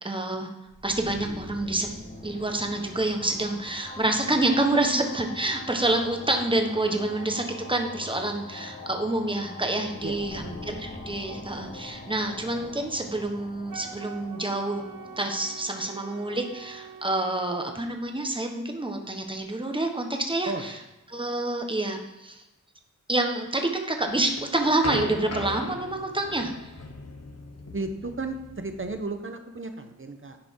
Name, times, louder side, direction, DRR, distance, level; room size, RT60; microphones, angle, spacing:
voice 1, 0.0-0.5 0.8-1.9 2.2-14.8 15.2-20.7 21.1-22.4 23.1-26.5, right 2 dB, 15° right, 4 dB, 1.3 m, -27 dB
sound 1, 0.7-18.3, left 2 dB, 25° left, 2.1 m, -43 dB
voice 2, 10.0-10.6 20.4-20.7 27.7-30.4, right 3 dB, 40° right, 6 dB, 1.1 m, -34 dB
Wind instrument woodwind instrument, 13.7-17.6, right 8 dB, 75° right, 1.0 m, -44 dB
sound 2, 24.1-29.0, left 3 dB, 50° left, 1.1 m, -38 dB
10.5 x 5.2 x 4.7 m, 1.0 s
wide cardioid pair, 70°, 33 cm